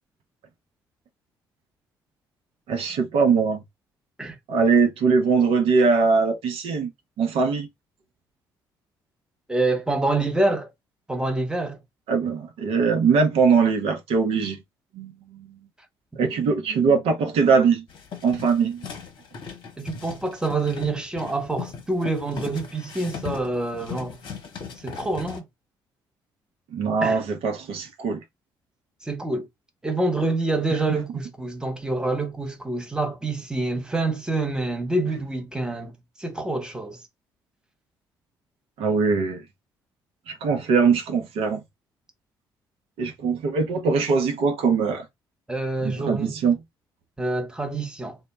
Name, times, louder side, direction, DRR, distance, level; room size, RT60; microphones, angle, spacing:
voice 1, 2.7-3.6 4.5-6.9 7.2-7.7 12.1-14.6 14.9-15.6 16.2-17.8 18.2-18.8 26.7-28.2 38.8-39.4 40.3-41.6 43.0-45.1 45.8-46.6, right 5 dB, 60° right, 0.6 m, -21 dB
voice 2, 9.5-10.7 11.1-11.8 19.8-24.2 24.8-25.4 27.0-27.2 29.0-29.5 29.8-35.9 36.2-37.0 45.5-46.4 47.2-48.2, right 2 dB, 5° right, 0.8 m, -26 dB
sound 1, 17.9-25.4, left 7 dB, 45° left, 0.8 m, -38 dB
2.1 x 2.0 x 3.1 m
figure-of-eight pair, 45°, 11 cm